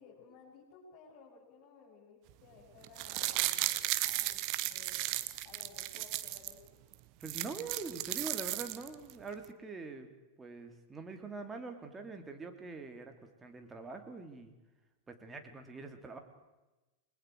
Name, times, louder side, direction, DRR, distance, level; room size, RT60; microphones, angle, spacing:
voice 1, 0.0-5.2 5.4-6.8, left 4 dB, 40° left, -4 dB, 7.3 m, -57 dB
sound 1, 2.8-6.5 6.9-7.0 7.2-9.1 9.4-9.5, right 17 dB, 45° right, 1.2 m, -35 dB
voice 2, 7.2-10.1 10.4-14.5 15.1-16.2, right 3 dB, 15° right, 5 dB, 3.1 m, -44 dB
29.5 x 21.5 x 4.8 m, 1.1 s
figure-of-eight pair, 90°, 0 cm